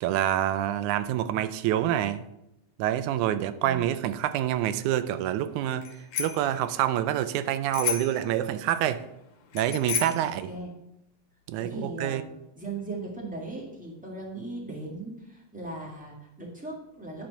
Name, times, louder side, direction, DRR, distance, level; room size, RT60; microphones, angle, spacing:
voice 1, 0.0-2.2 2.8-5.9 6.2-9.0 9.5-10.5 11.5-12.2, right 12 dB, 90° right, 13 dB, 2.0 m, -27 dB
Bicycle bell, 5.8-6.5 7.7-8.3 9.5-10.3, left 8 dB, 85° left, 2.4 m, -31 dB
voice 2, 10.2-10.7 11.6-12.2 12.5-17.3, right 2 dB, 5° right, -1 dB, 1.3 m, -38 dB
10.0 x 4.4 x 6.5 m, 0.85 s
omnidirectional pair, 3.4 m